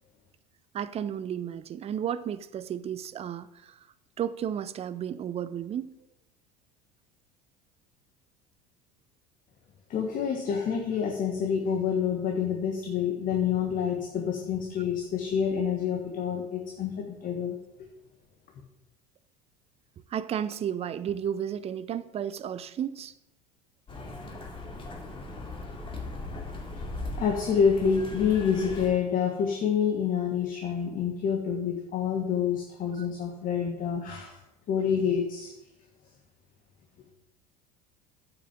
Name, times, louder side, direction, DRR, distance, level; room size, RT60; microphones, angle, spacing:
voice 1, 0.7-3.8 4.2-6.0 20.1-23.1 33.0-33.1, right 9 dB, 30° right, 15 dB, 0.6 m, -33 dB
voice 2, 9.9-17.9 27.1-34.4 34.7-35.5, left 7 dB, 40° left, 3 dB, 1.4 m, -27 dB
sound 1, 23.9-28.9, left 2 dB, 25° left, 2.5 m, -38 dB
8.3 x 6.0 x 7.3 m, 0.91 s
figure-of-eight pair, 75°, 21 cm